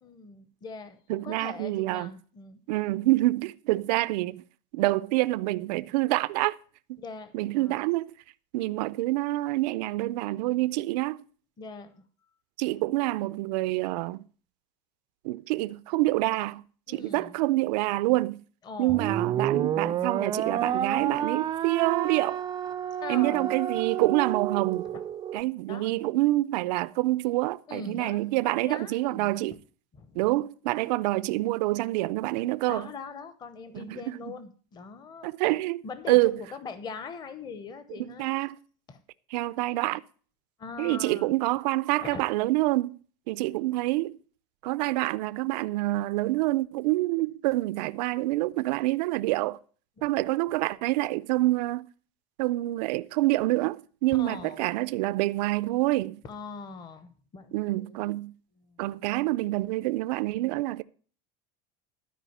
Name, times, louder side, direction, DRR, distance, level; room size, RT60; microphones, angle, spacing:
voice 1, 0.0-2.6 7.0-7.8 11.6-12.0 16.9-17.3 18.6-19.1 23.0-23.6 24.8-25.0 25.7-25.9 27.7-29.6 29.9-30.3 32.7-35.3 35.8-38.3 38.9-39.0 40.6-41.4 41.9-42.2 50.0-50.2 54.2-54.7 56.2-58.0 58.6-58.8, left 4 dB, 20° left, 0.9 m, -42 dB
voice 2, 1.1-2.1 2.7-4.4 4.7-6.6 6.9-7.0 7.3-8.1 8.5-11.2 12.6-14.2 15.2-18.4 18.8-22.4 23.1-24.9 25.3-29.6 30.1-32.9 33.7-34.3 35.2-36.4 38.2-38.6 39.3-40.0 40.8-43.0 43.3-44.2 44.6-49.6 50.0-51.8 52.4-56.2 57.5-58.3 58.8-60.8, right 19 dB, 85° right, 0.5 m, -27 dB
sound 1, 18.9-25.4, right 9 dB, 20° right, 0.4 m, -30 dB
12.5 x 4.9 x 7.8 m
cardioid pair, 170°, 21 cm